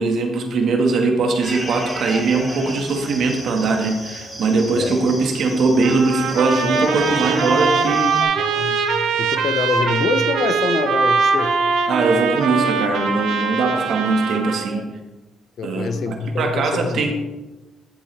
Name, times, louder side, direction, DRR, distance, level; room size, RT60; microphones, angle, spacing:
voice 1, 0.0-8.2 11.9-14.8 15.6-17.1, right 3 dB, 65° right, 3 dB, 1.7 m, -20 dB
sound 1, 1.4-8.2, right 1 dB, 10° right, 3.1 m, -33 dB
Trumpet, 5.8-14.7, right 5 dB, 80° right, 1.1 m, -21 dB
voice 2, 8.4-8.9 9.2-11.5 14.7-15.0 15.6-17.1, left 5 dB, 65° left, 8 dB, 1.0 m, -25 dB
13.0 x 7.2 x 3.5 m, 1.1 s
cardioid pair, 90°, 0 cm